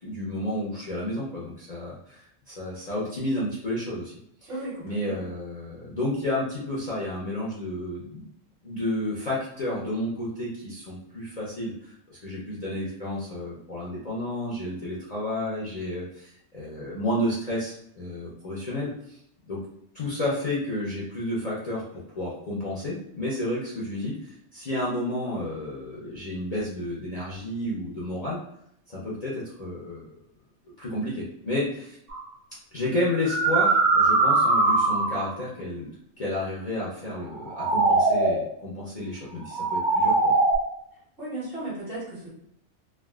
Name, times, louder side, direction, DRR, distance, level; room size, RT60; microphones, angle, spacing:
voice 1, 0.0-4.5 4.8-8.3 8.6-19.2 19.4-19.7 19.9-28.4 28.9-30.1 30.8-32.0 32.7-35.9 36.2-40.4, left 1 dB, 40° left, -6 dB, 0.6 m, -31 dB
voice 2, 4.5-5.2 41.2-42.3, right 2 dB, 50° right, -7 dB, 1.6 m, -35 dB
sound 1, 32.1-32.3 33.1-35.4 37.3-38.5 39.4-40.6, right 3 dB, 80° right, 1.2 m, -21 dB
3.3 x 2.4 x 2.3 m, 0.72 s
omnidirectional pair, 1.3 m